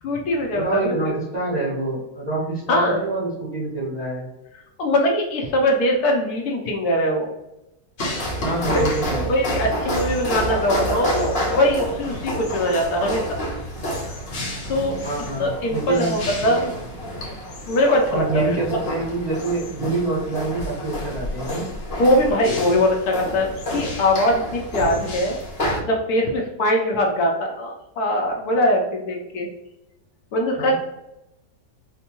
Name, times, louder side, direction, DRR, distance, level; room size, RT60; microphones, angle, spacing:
voice 1, 0.0-1.1 2.7-3.0 4.8-7.3 8.7-8.8 9.3-13.2 14.7-15.0 15.4-16.7 17.7-18.5 22.0-25.4 25.8-29.5 30.3-30.7, left 1 dB, 70° left, 0 dB, 1.0 m, -21 dB
voice 2, 0.6-4.3 8.4-9.3 15.0-16.2 16.4-16.6 18.1-21.6 30.6-30.7, right 2 dB, 35° right, -6 dB, 0.7 m, -26 dB
sound 1, 8.0-25.8, equal, 45° left, 0.8 m, -29 dB
4.3 x 2.1 x 2.8 m, 0.90 s
omnidirectional pair, 1.9 m